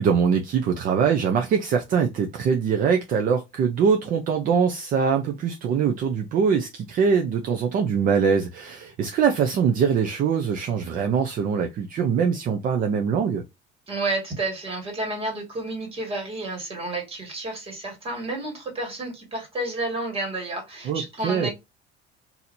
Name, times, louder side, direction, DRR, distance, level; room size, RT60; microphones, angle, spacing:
voice 1, 0.0-13.4 20.8-21.5, right 6 dB, 45° right, 0.5 m, -23 dB
voice 2, 13.9-21.5, right 2 dB, 30° right, 1.9 m, -30 dB
4.3 x 2.8 x 2.6 m
cardioid pair, 175°, 20 cm